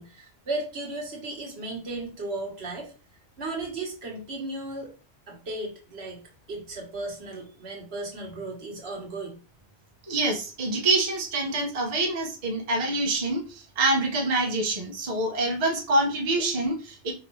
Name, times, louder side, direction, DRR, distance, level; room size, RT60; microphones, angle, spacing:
voice 1, 0.0-2.9 3.4-4.9 5.3-9.4, right 2 dB, 70° right, 0 dB, 1.5 m, -35 dB
voice 2, 10.1-17.1, right 2 dB, 35° right, 0 dB, 0.9 m, -26 dB
4.9 x 2.9 x 3.0 m, 0.34 s
omnidirectional pair, 1.1 m